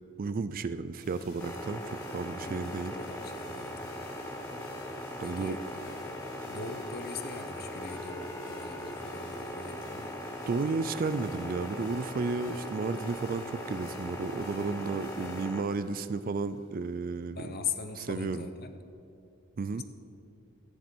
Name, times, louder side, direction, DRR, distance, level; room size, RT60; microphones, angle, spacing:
voice 1, 0.2-2.9 5.2-5.6 10.5-17.5 18.1-18.4 19.6-19.8, right 4 dB, 40° right, 13 dB, 0.4 m, -33 dB
sound 1, 1.0-17.0, left 2 dB, 80° left, 3.2 m, -51 dB
sound 2, 1.4-15.6, left 1 dB, 10° left, 0.8 m, -40 dB
voice 2, 2.4-4.0 5.2-6.1 6.4-10.1 15.2-15.4 17.1-18.7 19.7-19.8, left 5 dB, 45° left, 8 dB, 0.8 m, -41 dB
13.5 x 10.0 x 4.5 m, 2.6 s
head